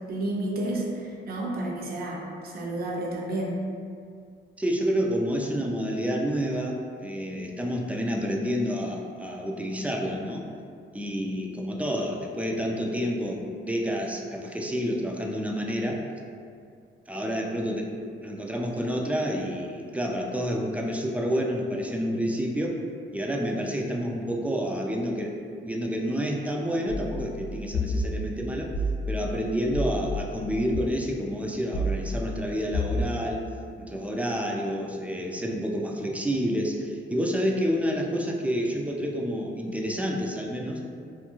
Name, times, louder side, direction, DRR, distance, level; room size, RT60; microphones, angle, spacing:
voice 1, 0.1-3.5, right 1 dB, 50° right, -2 dB, 0.6 m, -31 dB
voice 2, 4.6-10.5 10.9-16.0 17.1-22.8 23.1-25.3 25.6-28.7 29.1-33.4 33.8-40.8, equal, 5° right, -1 dB, 0.3 m, -29 dB
sound 1, 26.9-30.8 31.7-33.0, left 1 dB, 60° left, 0.8 m, -31 dB
2.5 x 2.3 x 2.9 m, 2.2 s
cardioid pair, 90°, 20 cm